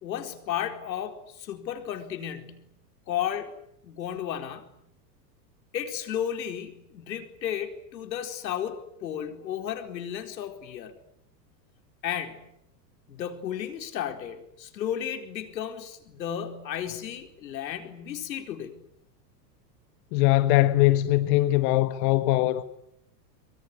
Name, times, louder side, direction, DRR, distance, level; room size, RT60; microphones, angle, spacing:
voice 1, 0.0-2.7 3.1-3.5 3.8-4.8 5.7-10.9 12.0-12.5 13.1-18.8, left 9 dB, 90° left, 4.4 m, -33 dB
voice 2, 20.1-22.6, left 16 dB, 60° left, 1.7 m, -21 dB
24.0 x 23.5 x 9.9 m
hypercardioid pair, 115°, 50 cm